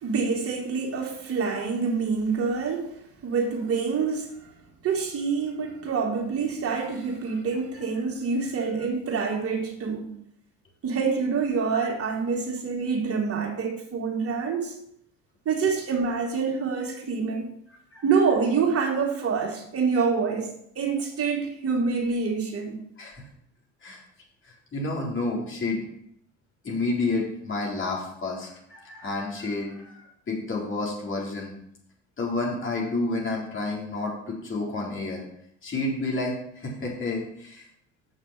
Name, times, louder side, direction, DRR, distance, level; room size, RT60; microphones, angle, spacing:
voice 1, 0.0-2.9 3.2-4.5 4.8-10.1 10.8-14.7 15.4-17.5 18.0-22.8, right 5 dB, 40° right, 2.8 m, -26 dB
voice 2, 24.7-25.8 26.6-31.5 32.2-35.2 35.6-37.6, left 2 dB, 35° left, 4.2 m, -30 dB
6.7 x 6.3 x 7.6 m
figure-of-eight pair, 60°, 37 cm